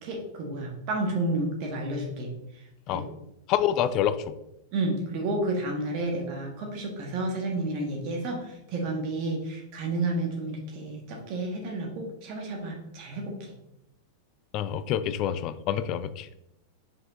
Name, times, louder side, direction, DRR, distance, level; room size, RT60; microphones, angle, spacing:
voice 1, 0.0-2.3 2.9-3.0 4.7-13.5, right 2 dB, 45° right, 1 dB, 1.6 m, -31 dB
voice 2, 3.5-4.3 14.5-16.3, left 10 dB, 40° left, 13 dB, 0.4 m, -27 dB
5.4 x 5.1 x 3.7 m, 0.83 s
figure-of-eight pair, 90°, 0 cm